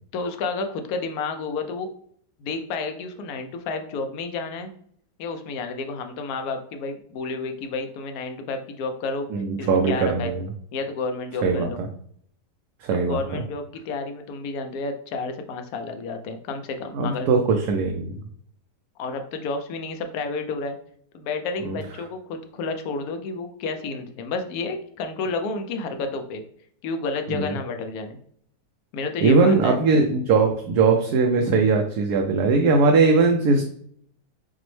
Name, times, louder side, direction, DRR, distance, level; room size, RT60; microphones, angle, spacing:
voice 1, 0.1-1.9 2.4-4.7 5.2-9.3 9.6-10.4 10.7-11.8 12.9-17.3 19.0-20.8 21.1-26.4 26.8-28.2 28.9-29.8, left 3 dB, 70° left, 6 dB, 1.0 m, -31 dB
voice 2, 9.3-10.5 11.4-11.9 12.8-13.4 16.9-18.1 21.6-21.8 27.3-27.5 29.2-33.6, right 4 dB, 75° right, 3 dB, 1.0 m, -20 dB
5.9 x 2.1 x 3.1 m, 0.64 s
omnidirectional pair, 1.8 m